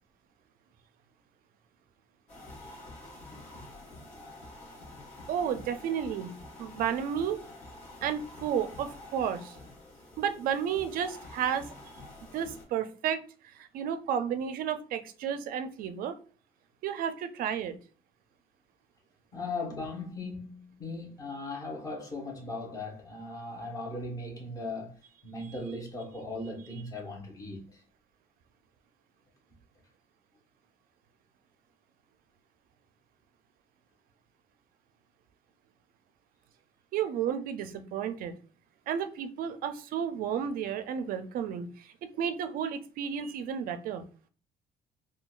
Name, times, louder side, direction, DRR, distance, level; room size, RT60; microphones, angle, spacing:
sound 1, 2.3-12.6, left 2 dB, 45° left, 1.6 m, -48 dB
voice 1, 5.3-6.3 6.6-7.4 8.0-9.6 10.2-11.7 12.3-13.2 13.6-16.1 16.8-17.8 36.9-38.4 38.9-44.1, right 8 dB, 70° right, 0.5 m, -32 dB
voice 2, 19.3-27.8, left 2 dB, 25° left, 1.1 m, -38 dB
3.8 x 2.3 x 2.4 m
cardioid pair, 130°, 15 cm